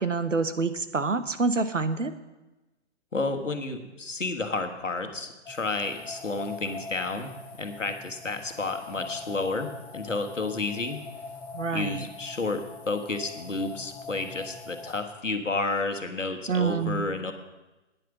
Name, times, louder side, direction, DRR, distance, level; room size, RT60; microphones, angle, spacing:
voice 1, 0.0-2.1 11.5-12.0 16.5-17.1, right 4 dB, 85° right, 11 dB, 1.0 m, -27 dB
voice 2, 3.1-7.3 7.6-11.0 11.7-17.3, left 3 dB, 85° left, 6 dB, 1.4 m, -31 dB
sound 1, 5.4-15.0, left 4 dB, 5° left, 0.4 m, -42 dB
9.8 x 9.3 x 6.1 m, 1.1 s
figure-of-eight pair, 120°, 37 cm